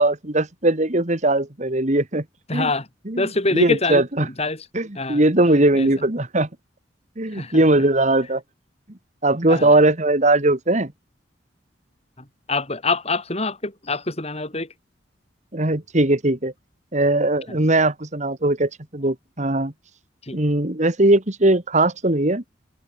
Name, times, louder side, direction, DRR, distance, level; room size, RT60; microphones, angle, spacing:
voice 1, 0.0-2.2 2.5-2.7 3.1-4.3 4.7-6.5 7.2-8.4 9.2-10.9 15.5-16.5 16.9-19.7 20.3-22.4, right 2 dB, 40° right, 2.2 m, -19 dB
voice 2, 2.5-2.9 3.2-4.6 4.9-5.2 5.7-5.9 7.3-7.6 9.5-9.7 12.5-14.7 20.3-20.4, left 3 dB, 35° left, 6.4 m, -25 dB
open air
head